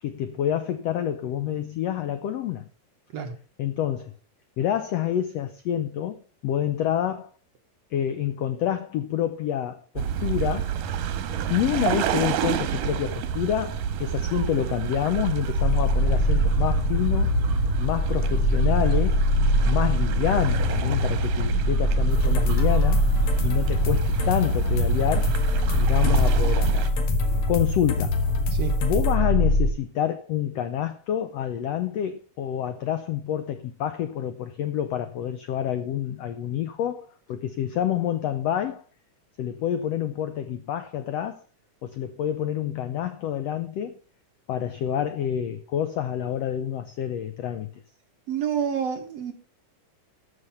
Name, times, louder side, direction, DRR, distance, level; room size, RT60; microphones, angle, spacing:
voice 1, 0.0-2.7 3.6-4.1 4.6-7.3 7.9-10.7 11.5-17.4 17.8-19.2 19.7-23.1 23.4-25.4 25.8-26.9 27.5-28.2 28.8-38.8 39.4-41.4 41.8-44.0 44.5-47.7, left 10 dB, 85° left, 1.4 m, -28 dB
sound 1, 10.0-26.9, right 8 dB, 80° right, 2.6 m, -28 dB
sound 2, 15.6-29.7, left 1 dB, 45° left, 3.0 m, -23 dB
sound 3, 22.1-29.2, left 3 dB, 60° left, 2.8 m, -33 dB
voice 2, 48.3-49.3, right 7 dB, 60° right, 2.0 m, -28 dB
13.0 x 6.6 x 5.4 m
omnidirectional pair, 3.8 m